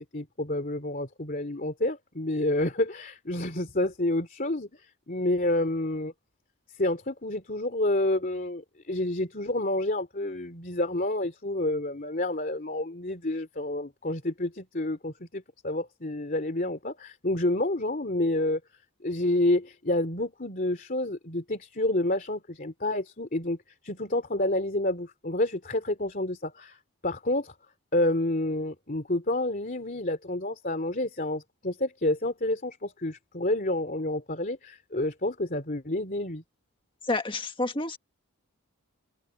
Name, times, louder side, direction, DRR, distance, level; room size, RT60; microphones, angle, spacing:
voice 1, 0.0-4.7 5.1-6.1 6.8-18.6 19.0-23.6 23.8-26.8 27.0-27.5 27.9-36.4, left 1 dB, 40° left, 2.9 m, -29 dB
voice 2, 37.1-38.0, left 2 dB, 20° left, 1.6 m, -29 dB
open air
head